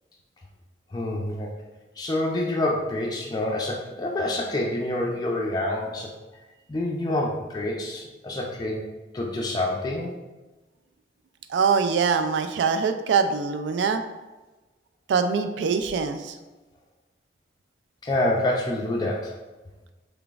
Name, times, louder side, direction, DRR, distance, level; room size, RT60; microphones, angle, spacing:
voice 1, 0.9-1.5 2.0-6.1 6.7-8.9 9.1-10.1 18.0-19.3, left 1 dB, 25° left, -2 dB, 0.4 m, -27 dB
voice 2, 11.5-14.0 15.1-16.3, right 5 dB, 85° right, 7 dB, 0.3 m, -23 dB
3.8 x 3.3 x 2.4 m, 1.1 s
head